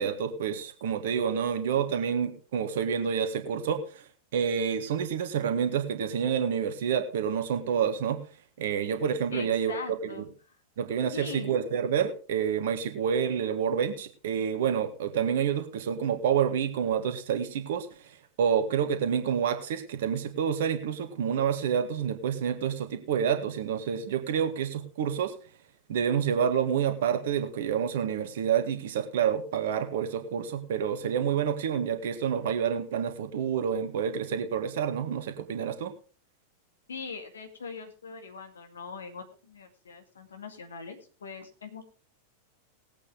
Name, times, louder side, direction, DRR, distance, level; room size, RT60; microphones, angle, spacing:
voice 1, 0.0-4.0 4.3-8.2 8.6-10.2 10.8-25.3 25.9-35.9, right 8 dB, 55° right, 8 dB, 1.6 m, -28 dB
voice 2, 9.3-10.5 11.1-11.5 36.9-41.8, left 5 dB, 70° left, 6 dB, 2.1 m, -41 dB
18.5 x 8.5 x 3.5 m, 0.37 s
figure-of-eight pair, 90°, 0 cm